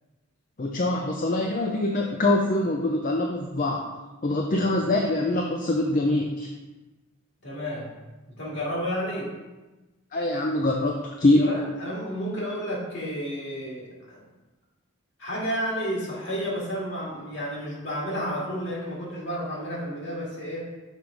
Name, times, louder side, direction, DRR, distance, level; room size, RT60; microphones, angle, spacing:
voice 1, 0.6-3.9 4.2-6.5 10.1-11.5, left 2 dB, 40° left, 1 dB, 0.4 m, -24 dB
voice 2, 7.4-7.9 8.3-9.3 11.4-14.2 15.2-20.6, equal, 55° left, -5 dB, 2.2 m, -31 dB
6.3 x 3.5 x 5.1 m, 1.1 s
head